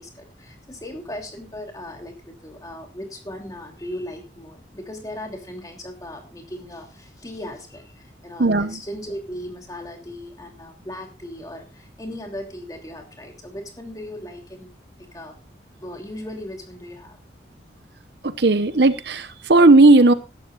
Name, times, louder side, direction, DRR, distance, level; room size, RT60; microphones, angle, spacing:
voice 1, 0.0-14.7 15.0-15.4 15.8-17.2, left 1 dB, 20° left, 2 dB, 2.9 m, -37 dB
voice 2, 8.4-8.8 18.2-20.1, right 2 dB, 70° right, 12 dB, 0.9 m, -15 dB
16.5 x 12.0 x 2.4 m, 0.29 s
head